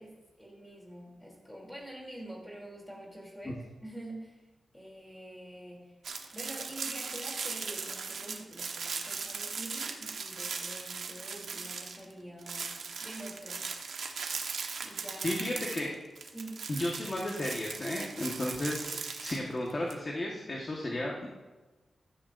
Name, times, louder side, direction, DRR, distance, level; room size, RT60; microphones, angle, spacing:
voice 1, 0.0-4.4 4.7-6.0 6.3-12.8 13.0-13.9 14.8-15.3 16.3-16.6, right 1 dB, 5° left, -2 dB, 3.0 m, -46 dB
sound 1, 6.0-12.1 12.4-19.9, right 5 dB, 70° right, 1.2 m, -38 dB
voice 2, 15.2-15.9 16.7-21.3, left 1 dB, 30° left, -2 dB, 1.3 m, -34 dB
15.0 x 13.0 x 2.6 m, 1.2 s
wide cardioid pair, 165°, 0 cm